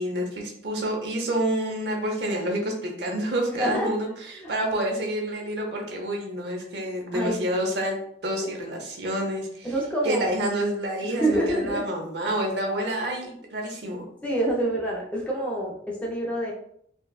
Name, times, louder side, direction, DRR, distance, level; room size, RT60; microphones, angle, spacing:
voice 1, 0.0-4.1 4.5-8.0 8.2-9.7 10.0-14.0, right 1 dB, 65° right, 1 dB, 0.8 m, -28 dB
voice 2, 3.6-3.9 4.4-4.5 7.1-7.7 9.6-10.4 11.1-11.9 14.2-16.5, right 1 dB, 5° left, -3 dB, 0.6 m, -27 dB
4.1 x 2.2 x 2.4 m, 0.67 s
head